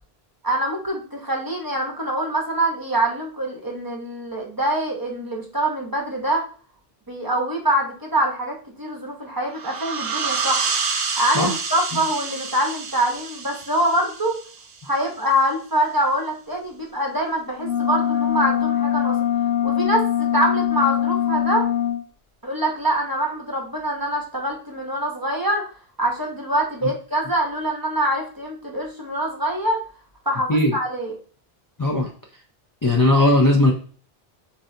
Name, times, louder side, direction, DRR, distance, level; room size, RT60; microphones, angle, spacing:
voice 1, 0.4-6.4 7.1-10.7 11.2-14.4 14.8-19.2 19.6-21.7 22.4-25.7 26.0-29.8 30.3-31.1, right 1 dB, 20° right, 0 dB, 0.8 m, -24 dB
sound 1, 9.5-14.9, right 5 dB, 70° right, 0.9 m, -28 dB
sound 2, 17.6-22.0, left 10 dB, 65° left, 0.9 m, -22 dB
voice 2, 31.8-32.1 32.8-33.7, left 1 dB, 25° left, 1 dB, 0.4 m, -17 dB
6.9 x 2.6 x 2.7 m, 0.41 s
omnidirectional pair, 1.0 m